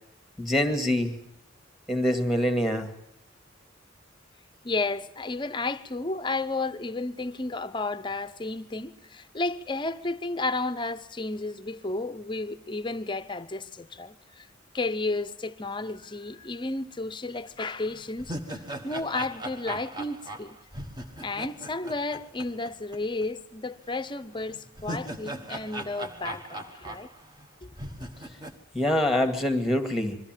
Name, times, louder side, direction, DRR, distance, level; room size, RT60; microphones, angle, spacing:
voice 1, 0.4-1.1 1.9-2.9 28.7-30.2, left 1 dB, ahead, 1.9 m, -25 dB
voice 2, 4.6-14.5 14.7-20.6 21.2-27.1 27.6-27.7, left 3 dB, 25° left, 0.8 m, -32 dB
sound 1, 17.4-17.5 17.9-23.0 23.2-23.3 24.5-27.5 27.7-28.6, right 1 dB, 20° right, 1.4 m, -39 dB
22.5 x 14.0 x 9.0 m
head